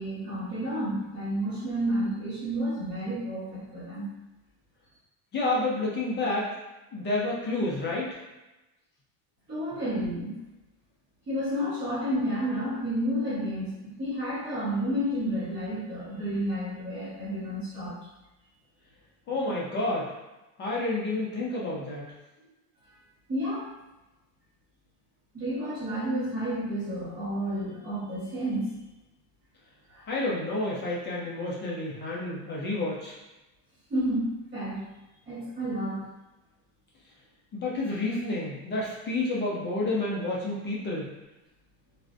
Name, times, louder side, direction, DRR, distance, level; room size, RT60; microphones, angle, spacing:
voice 1, 0.0-4.1 9.5-10.4 11.3-18.0 23.3-23.7 25.3-28.8 29.9-30.0 33.9-34.8 35.2-36.0, equal, 20° right, -13 dB, 1.0 m, -31 dB
voice 2, 5.3-6.5 6.9-8.1 19.3-20.1 20.6-22.1 30.1-33.2 37.5-41.1, left 2 dB, 25° left, -5 dB, 0.4 m, -29 dB
3.3 x 2.4 x 2.5 m, 1.0 s
cardioid pair, 160°, 45 cm